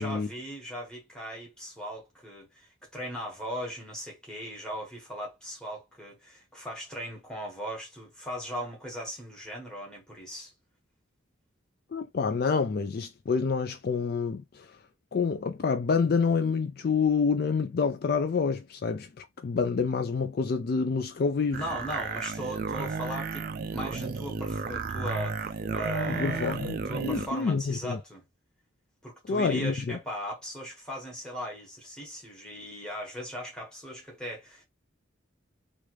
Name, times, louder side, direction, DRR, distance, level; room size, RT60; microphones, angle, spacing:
voice 1, 0.0-10.5 21.5-28.2 29.0-34.6, equal, 5° left, 1.4 m, -38 dB
voice 2, 11.9-14.7 15.1-21.6 26.1-26.7 27.0-28.0 29.3-30.0, left 5 dB, 50° left, 0.3 m, -27 dB
sound 1, 21.5-27.3, right 4 dB, 45° right, 0.3 m, -33 dB
3.3 x 2.5 x 3.1 m
head